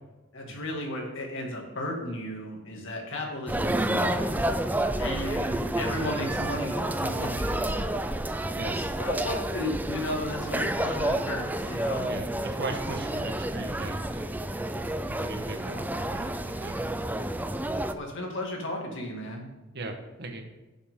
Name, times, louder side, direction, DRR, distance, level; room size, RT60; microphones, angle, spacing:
voice 1, 0.3-4.4 5.0-8.0 8.8-12.1 17.9-19.4, left 1 dB, 65° left, 0 dB, 2.4 m, -34 dB
sound 1, 3.5-17.9, right 1 dB, 10° right, 0.5 m, -30 dB
voice 2, 12.1-14.6 14.8-16.8 19.7-20.4, right 2 dB, 55° right, 4 dB, 1.4 m, -39 dB
16.5 x 6.9 x 3.8 m, 1.1 s
head